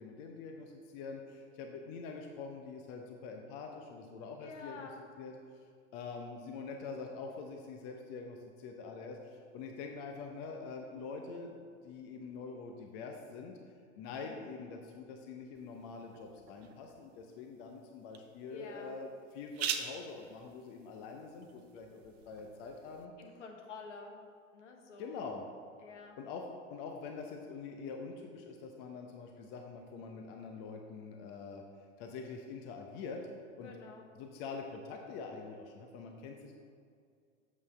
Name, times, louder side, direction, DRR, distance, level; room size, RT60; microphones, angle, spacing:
voice 1, 0.0-4.9 5.2-5.7 5.9-13.6 14.0-23.1 25.0-25.5 26.2-31.6 32.0-33.2 33.6-33.7 34.1-36.5, left 4 dB, 35° left, 3 dB, 0.8 m, -45 dB
voice 2, 4.4-5.0 14.2-14.4 18.5-18.9 23.2-24.2 24.5-25.2 25.8-26.2 33.6-34.1, left 4 dB, 65° left, 2 dB, 1.3 m, -49 dB
sound 1, 15.5-23.1, right 8 dB, 50° right, 0.8 m, -45 dB
8.1 x 7.2 x 3.3 m, 2.3 s
figure-of-eight pair, 95°, 39 cm